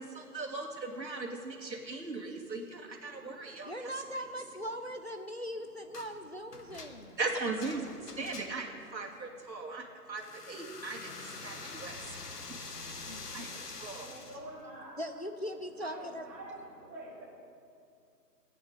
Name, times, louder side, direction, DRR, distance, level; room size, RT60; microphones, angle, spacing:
voice 1, 0.0-3.9 7.2-12.2 12.5-12.6 13.3-14.1, right 3 dB, 80° right, 0 dB, 2.5 m, -39 dB
voice 2, 3.6-7.2 13.1-13.8 15.0-16.3, equal, 40° left, 6 dB, 0.5 m, -40 dB
sound 1, 5.9-6.1 6.5-8.8 10.2-14.4, left 3 dB, 65° left, 1.6 m, -45 dB
voice 3, 14.0-15.0 15.8-17.2, right 1 dB, 15° right, -8 dB, 2.7 m, -46 dB
16.5 x 9.4 x 6.5 m, 2.4 s
figure-of-eight pair, 165°, 50 cm